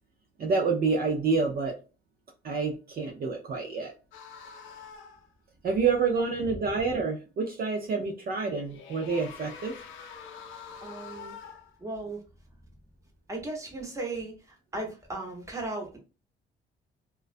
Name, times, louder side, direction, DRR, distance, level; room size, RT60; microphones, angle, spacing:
voice 1, 0.4-1.7 2.4-3.9 5.6-9.7, right 4 dB, 50° right, 1 dB, 0.5 m, -28 dB
sound 1, 4.1-5.3 8.4-11.8, left 6 dB, 80° left, 0.5 m, -45 dB
voice 2, 10.8-11.3 11.8-12.2 13.3-16.0, right 2 dB, 15° right, 1 dB, 0.9 m, -36 dB
2.3 x 2.2 x 2.5 m, 0.32 s
cardioid pair, 90°, 20 cm